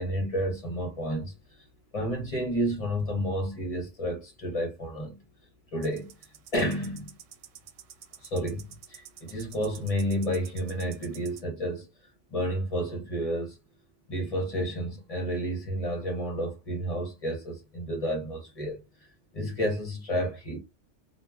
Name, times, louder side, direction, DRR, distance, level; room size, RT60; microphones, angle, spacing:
voice 1, 0.0-1.7 1.9-5.2 5.7-6.1 6.5-7.1 8.2-11.9 12.3-13.6 14.1-18.8 19.3-20.6, equal, 35° left, 0.7 m, -31 dB
sound 1, 5.8-11.4, right 9 dB, 80° right, 0.9 m, -49 dB
2.3 x 2.2 x 3.2 m
omnidirectional pair, 1.3 m